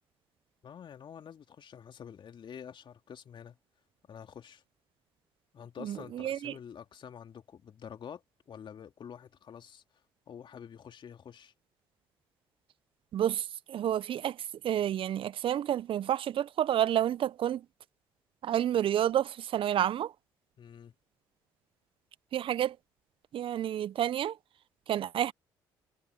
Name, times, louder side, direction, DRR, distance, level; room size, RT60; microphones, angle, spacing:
voice 1, 0.6-3.6 4.1-4.6 5.5-9.8 10.3-11.5 20.6-20.9, left 8 dB, 50° left, 2.9 m, -48 dB
voice 2, 5.8-6.5 13.1-17.6 18.4-20.1 22.3-22.8 23.3-24.4 24.9-25.3, right 11 dB, 55° right, 1.1 m, -30 dB
hypercardioid pair, 50°, 11 cm